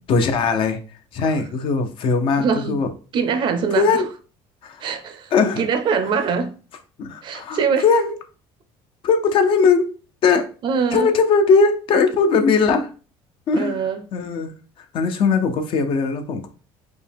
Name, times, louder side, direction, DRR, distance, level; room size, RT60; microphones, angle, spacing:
voice 1, 0.1-0.8 1.1-2.9 3.7-4.0 4.6-4.9 5.3-5.7 7.0-8.2 9.0-9.9 10.2-10.5 10.9-12.9 13.5-13.8 14.1-14.5 14.9-16.5, left 4 dB, 50° left, 0.7 m, -19 dB
voice 2, 2.4-2.8 3.1-4.0 4.8-6.5 7.2-7.8 10.6-11.1 13.6-14.0, right 6 dB, 45° right, 0.6 m, -23 dB
4.9 x 2.2 x 3.5 m
cardioid pair, 135°, 11 cm